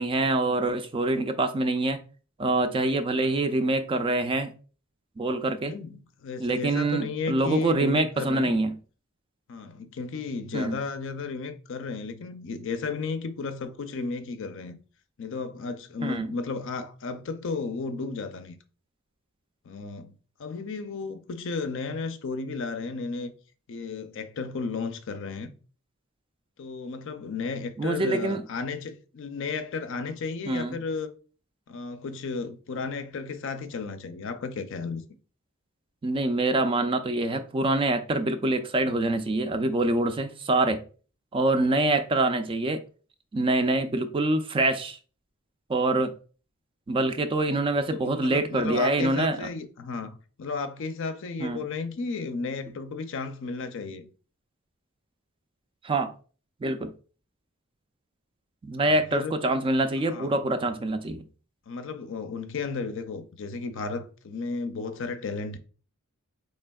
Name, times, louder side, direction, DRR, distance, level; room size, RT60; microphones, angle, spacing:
voice 1, 0.0-2.0 2.4-4.5 5.2-5.7 6.4-8.8 10.5-10.8 16.0-16.3 27.8-28.4 30.5-30.8 36.0-40.8 41.3-42.8 43.3-45.0 45.7-46.1 46.9-49.5 51.4-51.6 55.8-56.1 56.6-56.9 58.6-61.2, right 2 dB, 25° right, 0.3 m, -25 dB
voice 2, 5.6-8.6 9.5-14.8 15.2-18.6 19.7-20.1 20.4-23.3 23.7-25.5 26.6-31.1 31.7-35.0 47.9-54.1 58.8-59.4 60.1-60.4 61.7-65.6, left 4 dB, 60° left, 0.5 m, -34 dB
4.2 x 3.3 x 2.2 m
head